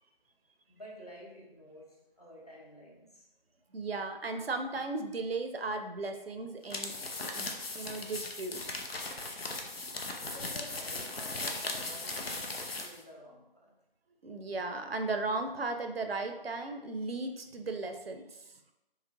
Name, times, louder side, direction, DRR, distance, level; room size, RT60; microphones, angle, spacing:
voice 1, 0.7-3.3 10.2-13.7, equal, 40° left, -4 dB, 0.8 m, -50 dB
voice 2, 3.7-6.9 7.3-7.5 7.8-8.8 14.2-18.4, right 3 dB, 80° right, 6 dB, 0.5 m, -36 dB
sound 1, 6.6-13.0, left 2 dB, 80° left, 0.6 m, -38 dB
3.2 x 2.8 x 2.5 m, 0.94 s
figure-of-eight pair, 170°, 29 cm